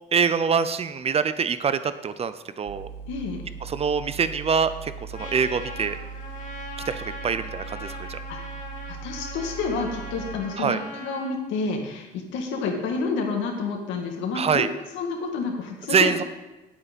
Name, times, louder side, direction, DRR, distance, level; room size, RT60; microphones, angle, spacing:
voice 1, 0.1-2.9 3.6-6.0 6.9-8.2 10.6-10.8 14.3-14.7 15.9-16.2, right 6 dB, 35° right, 13 dB, 0.6 m, -24 dB
sound 1, 2.7-10.4, right 6 dB, 65° right, 1.0 m, -39 dB
voice 2, 3.1-3.5 8.0-8.4 8.9-14.7 14.9-16.2, left 4 dB, 85° left, 2 dB, 1.9 m, -29 dB
Trumpet, 5.1-11.3, left 1 dB, 45° left, 2.1 m, -40 dB
8.8 x 8.3 x 5.2 m, 1.1 s
cardioid pair, 100°, 19 cm